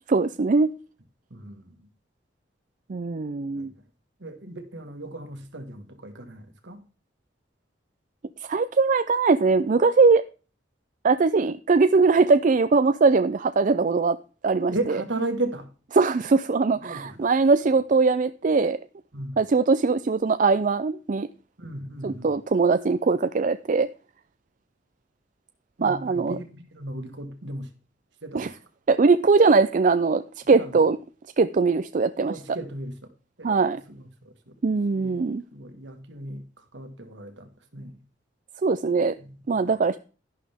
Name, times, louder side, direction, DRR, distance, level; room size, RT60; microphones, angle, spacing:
voice 1, 0.1-0.7 2.9-3.7 8.4-10.2 11.0-14.2 14.4-14.7 15.9-18.8 19.4-21.3 22.0-23.9 25.8-26.3 28.3-28.5 28.9-31.0 31.4-32.4 33.4-33.8 34.6-35.4 38.6-39.1 39.5-40.0, right 4 dB, 45° right, 0.4 m, -21 dB
voice 2, 1.3-1.9 3.5-3.7 4.2-6.8 14.7-15.7 16.7-17.3 19.1-19.4 21.6-22.3 25.8-27.7 28.2-28.5 30.5-30.8 32.2-33.0 33.4-34.5 34.9-35.1 35.5-38.0 39.2-40.0, right 2 dB, 70° right, 1.6 m, -36 dB
11.5 x 11.0 x 3.5 m
head